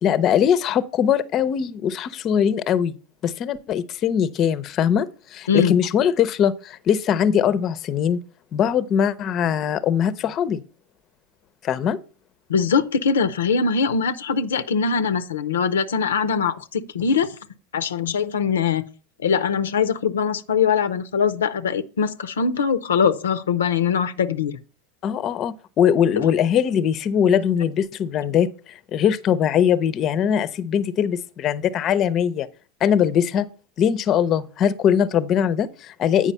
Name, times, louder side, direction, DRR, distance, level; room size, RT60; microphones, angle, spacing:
voice 1, 0.0-2.9 3.2-8.2 8.5-10.6 11.6-12.0 25.0-32.5 32.8-33.5 33.8-36.3, left 8 dB, 45° left, 0.6 m, -21 dB
voice 2, 12.5-17.3 17.7-18.8 19.2-24.6 26.2-26.3, left 6 dB, 80° left, 0.5 m, -22 dB
8.9 x 4.9 x 5.4 m
hypercardioid pair, 85°, 0 cm